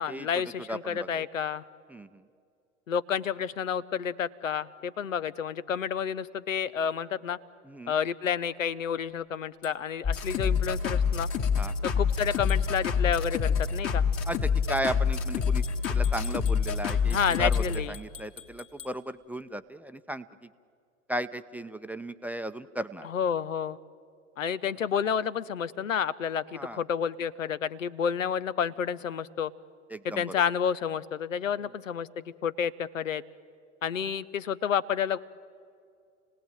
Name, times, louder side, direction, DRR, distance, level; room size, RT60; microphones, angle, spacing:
voice 1, 0.0-1.6 2.9-7.4 7.9-11.3 12.0-14.1 17.1-17.9 23.0-23.8 24.4-29.5 30.0-32.1 32.4-33.2 33.8-35.2, left 7 dB, 80° left, 18 dB, 0.8 m, -30 dB
voice 2, 0.7-1.3 1.9-2.2 7.6-7.9 11.5-11.8 14.3-15.6 15.9-20.5 21.1-23.1 24.5-24.6 26.5-26.8 29.9-30.2, right 1 dB, 5° right, 12 dB, 0.6 m, -35 dB
sound 1, 9.6-9.8 12.5-12.7 15.4-19.0, left 8 dB, 55° left, 2.9 m, -47 dB
sound 2, 10.0-17.7, left 6 dB, 35° left, 2.2 m, -26 dB
29.5 x 18.0 x 9.1 m, 2.4 s
figure-of-eight pair, 85°, 38 cm